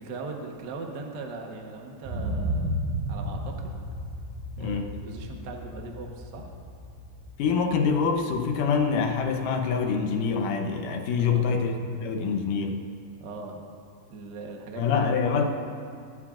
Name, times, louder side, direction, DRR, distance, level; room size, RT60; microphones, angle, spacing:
voice 1, 0.0-2.8 3.1-3.8 4.6-6.5 11.2-11.6 13.2-13.7 14.1-15.5, right 3 dB, 65° right, 1 dB, 1.0 m, -39 dB
sound 1, 2.0-9.9 10.3-10.4, equal, 85° right, 2.9 m, -34 dB
voice 2, 4.6-4.9 7.4-12.8 14.8-15.5, left 5 dB, 80° left, 4 dB, 2.5 m, -25 dB
23.0 x 11.5 x 2.5 m, 2.3 s
omnidirectional pair, 3.7 m